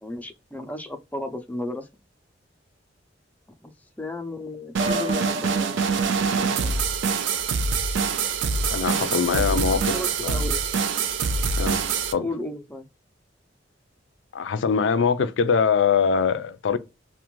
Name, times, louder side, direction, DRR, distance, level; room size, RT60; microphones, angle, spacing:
voice 1, 0.0-1.9 3.6-3.7 4.0-5.8 6.3-6.7 8.9-9.4 9.7-10.6 12.2-12.9, left 1 dB, 10° left, 0.4 m, -34 dB
sound 1, 4.7-12.1, right 5 dB, 80° right, 0.4 m, -25 dB
Piano, 4.8-6.7, left 1 dB, 40° right, 0.7 m, -33 dB
voice 2, 8.7-10.5 11.6-11.8 12.1-12.3 14.3-16.8, left 6 dB, 85° left, 0.4 m, -23 dB
2.5 x 2.2 x 3.0 m
head